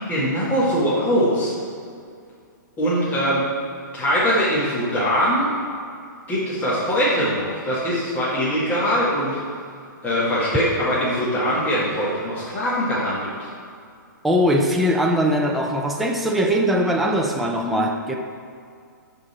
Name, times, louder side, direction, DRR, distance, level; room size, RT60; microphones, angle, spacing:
voice 1, 0.0-1.5 2.8-3.4 3.9-5.5 6.3-9.4 10.0-13.3, equal, 15° left, -10 dB, 1.9 m, -22 dB
voice 2, 14.2-18.1, equal, ahead, 0 dB, 0.4 m, -21 dB
11.5 x 4.0 x 4.3 m, 2.3 s
hypercardioid pair, 145°, 11 cm